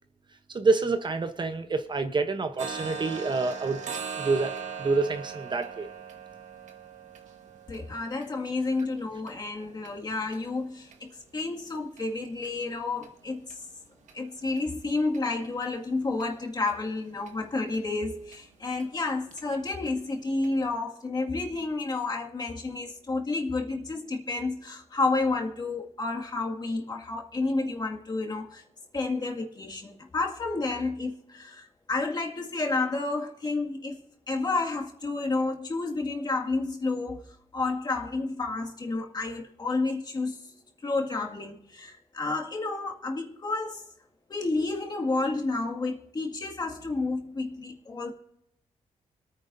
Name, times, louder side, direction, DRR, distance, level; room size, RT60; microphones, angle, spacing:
voice 1, 0.5-3.8 4.1-4.5 4.8-5.9, right 3 dB, 40° right, 0.9 m, -27 dB
sound 1, 2.6-10.4 10.8-11.0 11.4-11.5 12.0-12.1 12.4-12.5 13.0-13.1 13.5-13.6 14.1-14.2 14.6-14.7 15.1-15.2 15.6-15.7 16.2-16.3 16.7-16.8 17.3-17.4 17.7-17.8 18.3-18.4 18.8-18.9 19.3-19.4 19.9-20.0 20.4-20.5, right 6 dB, 80° right, 1.6 m, -40 dB
voice 2, 7.7-13.5 14.1-28.6 28.9-34.0 34.3-40.5 40.8-43.8 44.3-48.1, left 3 dB, 35° left, 2.1 m, -30 dB
25.5 x 9.5 x 2.7 m
cardioid pair, 95°, 12 cm